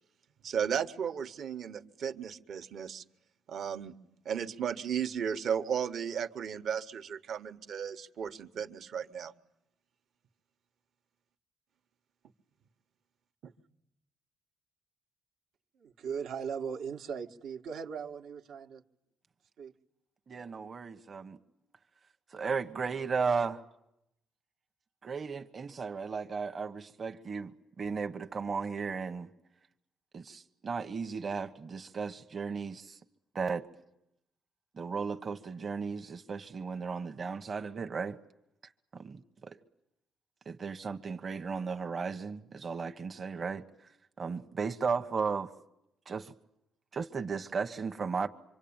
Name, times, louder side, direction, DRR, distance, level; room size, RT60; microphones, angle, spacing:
voice 1, 0.4-3.0 3.5-3.9 4.2-9.3 13.4-13.5, right 8 dB, 65° right, 1.5 m, -35 dB
voice 2, 15.7-18.8 19.6-19.7, right 6 dB, 80° right, 1.7 m, -39 dB
voice 3, 20.3-21.4 22.3-23.6 25.0-27.5 27.8-29.3 30.1-33.0 33.3-33.7 34.7-38.2 38.9-39.6 40.5-43.6 44.2-45.5 46.1-46.3 46.9-48.3, right 5 dB, 40° right, 1.2 m, -35 dB
25.5 x 25.0 x 8.9 m
cardioid pair, 90°, 0 cm